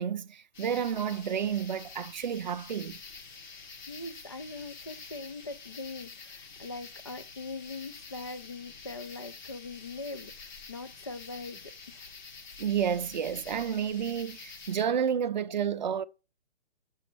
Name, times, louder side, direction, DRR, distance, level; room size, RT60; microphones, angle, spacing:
voice 1, 0.0-3.0 12.6-16.0, right 8 dB, 45° right, 0.6 m, -30 dB
sound 1, 0.5-14.9, left 4 dB, 45° left, 1.3 m, -48 dB
voice 2, 3.5-12.0, left 3 dB, 25° left, 0.4 m, -42 dB
6.9 x 6.3 x 6.1 m
hypercardioid pair, 175°, 33 cm